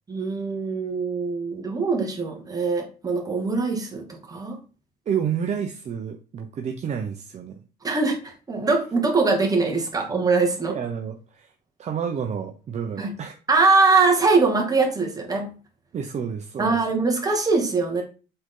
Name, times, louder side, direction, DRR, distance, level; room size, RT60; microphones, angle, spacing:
voice 1, 0.1-4.6 7.8-10.7 13.0-13.1 13.5-15.5 16.6-18.0, right 3 dB, 20° right, 1 dB, 2.1 m, -22 dB
voice 2, 5.1-7.6 9.9-10.0 10.7-11.5 11.8-13.4 15.9-16.8, right 7 dB, 40° right, 4 dB, 0.8 m, -30 dB
8.0 x 3.9 x 3.8 m, 0.36 s
cardioid pair, 110°, 17 cm